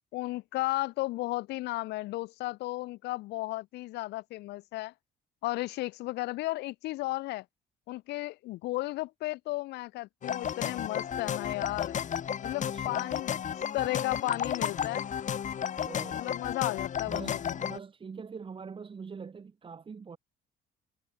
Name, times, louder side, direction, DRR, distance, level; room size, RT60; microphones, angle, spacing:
voice 1, 0.1-4.9 5.4-7.4 7.9-12.0 12.4-13.4 13.7-15.1 16.1-17.6, left 19 dB, 80° left, 1.0 m, -34 dB
sound 1, 10.2-17.8, left 8 dB, 45° left, 3.9 m, -33 dB
voice 2, 12.5-13.1 15.8-16.3 17.0-20.2, right 5 dB, 30° right, 3.2 m, -44 dB
cardioid pair, 110°, 17 cm